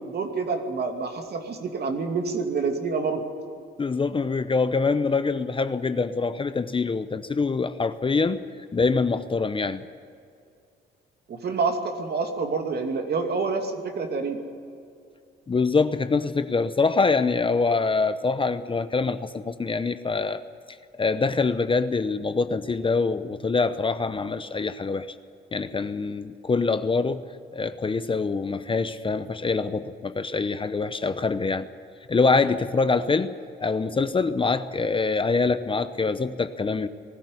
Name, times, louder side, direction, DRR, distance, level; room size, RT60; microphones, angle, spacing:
voice 1, 0.0-3.2 11.3-14.4, right 4 dB, 55° right, 4 dB, 2.6 m, -27 dB
voice 2, 3.8-8.4 8.7-9.8 15.5-20.4 21.0-25.1 25.5-27.2 27.5-31.7 32.1-33.3 33.6-36.9, left 4 dB, 25° left, 11 dB, 0.8 m, -24 dB
20.0 x 14.0 x 9.7 m, 2.4 s
cardioid pair, 90°, 20 cm